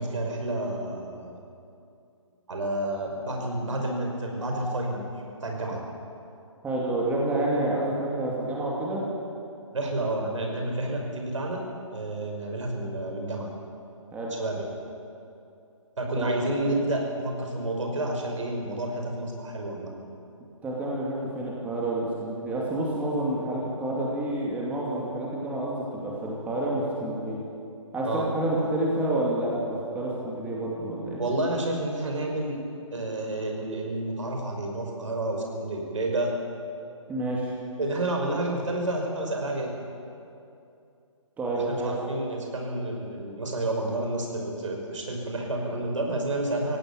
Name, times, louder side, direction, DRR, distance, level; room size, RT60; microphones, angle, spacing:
voice 1, 0.0-1.3 2.5-5.1 5.4-5.8 9.7-11.6 11.9-13.5 14.4-14.7 16.0-19.9 28.0-28.3 31.2-32.6 32.9-36.3 37.8-39.7 41.5-46.8, right 1 dB, 65° right, 1 dB, 5.6 m, -30 dB
voice 2, 6.6-9.0 14.1-14.3 16.2-16.4 20.6-27.4 27.9-31.2 37.1-37.5 41.4-41.9, right 1 dB, 10° right, -4 dB, 2.7 m, -29 dB
19.0 x 16.5 x 8.9 m, 2.6 s
figure-of-eight pair, 145°, 17 cm